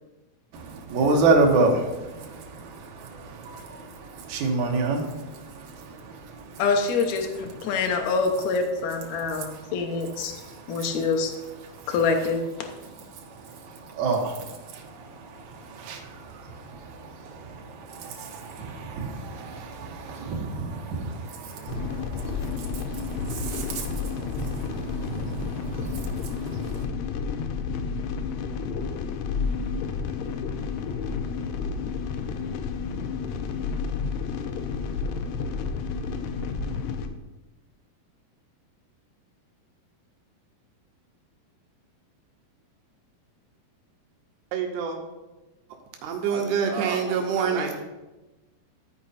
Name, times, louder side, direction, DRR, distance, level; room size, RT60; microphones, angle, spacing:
voice 1, 0.5-6.6 7.5-7.8 9.1-11.1 11.6-12.3 12.8-26.8, right 3 dB, 60° right, 0 dB, 2.3 m, -30 dB
voice 2, 6.6-10.3 10.7-11.3 11.9-12.4, left 4 dB, 70° left, 3 dB, 1.8 m, -25 dB
sound 1, 21.7-37.1, left 5 dB, 85° left, 2.7 m, -31 dB
voice 3, 44.5-45.0 46.0-47.8, right 6 dB, 85° right, 3 dB, 2.8 m, -26 dB
13.5 x 4.6 x 4.2 m, 1.1 s
omnidirectional pair, 4.5 m